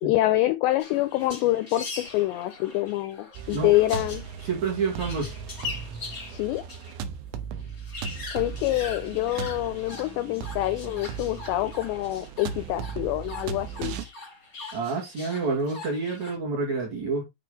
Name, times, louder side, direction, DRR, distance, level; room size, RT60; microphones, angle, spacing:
voice 1, 0.0-4.2 6.3-6.6 8.3-13.9, left 16 dB, 85° left, 2.5 m, -26 dB
sound 1, 0.8-7.0 7.3-7.4 7.6-16.4, left 3 dB, 40° left, 1.2 m, -42 dB
sound 2, 3.3-14.1, right 7 dB, 80° right, 3.1 m, -37 dB
voice 2, 4.4-5.3 14.7-17.2, right 4 dB, 50° right, 2.4 m, -28 dB
8.9 x 3.5 x 4.8 m
omnidirectional pair, 5.7 m